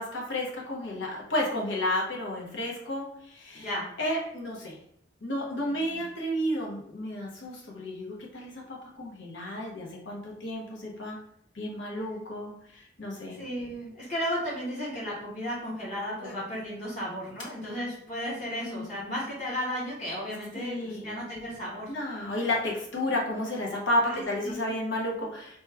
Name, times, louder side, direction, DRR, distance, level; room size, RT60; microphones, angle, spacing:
voice 1, 0.0-3.7 4.0-4.8 5.2-11.2 11.5-13.4 16.2-16.3 18.6-18.9 20.5-21.2 21.9-25.6, left 1 dB, 75° left, -1 dB, 0.9 m, -32 dB
voice 2, 3.5-3.9 5.7-6.0 13.3-21.9 24.0-24.7, equal, 40° left, -6 dB, 0.9 m, -34 dB
3.0 x 2.2 x 3.3 m, 0.70 s
head